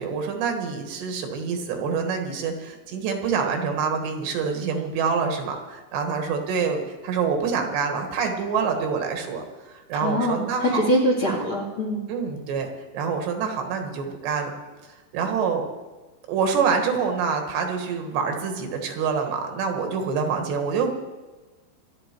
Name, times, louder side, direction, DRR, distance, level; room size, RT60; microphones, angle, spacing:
voice 1, 0.0-10.8 12.1-14.5 15.1-15.7 16.3-21.0, right 5 dB, 75° right, 4 dB, 3.7 m, -26 dB
voice 2, 9.9-12.0, equal, 40° left, 1 dB, 2.3 m, -23 dB
26.5 x 9.2 x 4.5 m, 1.2 s
omnidirectional pair, 5.0 m